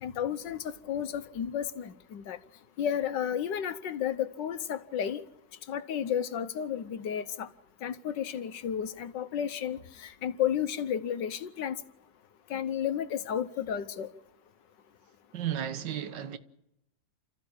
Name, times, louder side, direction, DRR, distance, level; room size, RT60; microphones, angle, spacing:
voice 1, 0.0-2.4 2.8-5.2 5.7-7.5 7.8-11.8 12.5-14.1, left 9 dB, 70° left, 1.6 m, -32 dB
voice 2, 15.3-16.4, right 10 dB, 65° right, 1.8 m, -33 dB
30.0 x 14.5 x 7.2 m
omnidirectional pair, 2.1 m